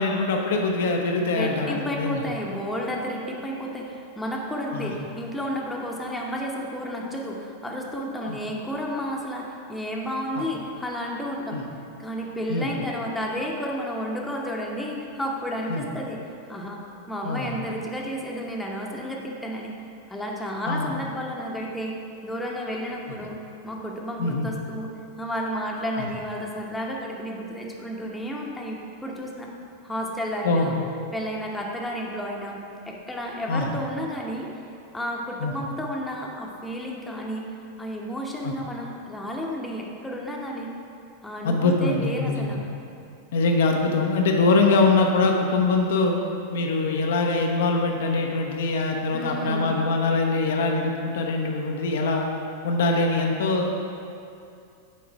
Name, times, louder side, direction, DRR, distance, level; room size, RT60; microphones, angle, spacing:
voice 1, 0.0-2.2 4.7-4.9 8.2-8.4 10.4-10.5 11.5-11.6 12.5-12.7 15.7-15.8 17.2-17.5 20.7-20.9 23.0-23.1 24.2-24.5 26.0-26.1 30.4-30.8 33.5-33.7 35.4-35.5 38.4-38.5 41.4-42.5 43.3-46.1 46.5-52.3 52.6-53.7, left 3 dB, 60° left, 1 dB, 0.6 m, -23 dB
voice 2, 1.3-11.6 12.0-16.2 16.5-16.8 17.1-19.7 20.1-22.0 22.2-23.4 23.6-24.9 25.2-29.5 29.8-30.7 31.1-34.5 34.9-37.5 37.8-40.7 41.2-42.6 49.1-49.8, equal, 5° left, -2 dB, 0.9 m, -32 dB
7.1 x 4.8 x 4.6 m, 2.6 s
figure-of-eight pair, 90°, 0 cm